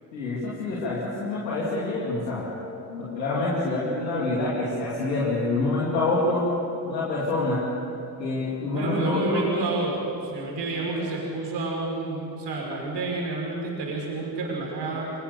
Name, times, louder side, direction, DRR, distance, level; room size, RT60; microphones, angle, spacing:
voice 1, 0.1-2.5 2.9-6.5 6.9-7.6 8.2-9.4, left 2 dB, 85° left, -6 dB, 2.7 m, -26 dB
voice 2, 8.7-15.1, right 3 dB, 55° right, -1 dB, 5.6 m, -29 dB
24.5 x 20.5 x 6.8 m, 2.9 s
hypercardioid pair, 45°, 50 cm